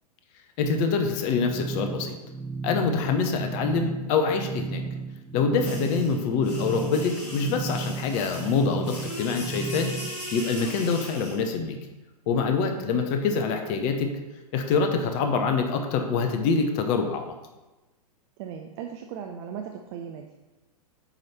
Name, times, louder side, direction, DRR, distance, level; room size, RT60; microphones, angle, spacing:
voice 1, 0.6-2.2 2.6-4.8 5.3-9.9 10.3-11.8 12.3-14.1 14.5-17.3, left 5 dB, 40° left, 5 dB, 0.7 m, -25 dB
sound 1, 1.3-10.1, right 4 dB, ahead, 0.7 m, -34 dB
sound 2, 5.6-11.4, left 1 dB, 85° left, 2.0 m, -39 dB
voice 2, 18.4-20.3, right 8 dB, 40° right, 4 dB, 0.5 m, -37 dB
8.7 x 3.2 x 4.2 m, 1.1 s
figure-of-eight pair, 105°, 20 cm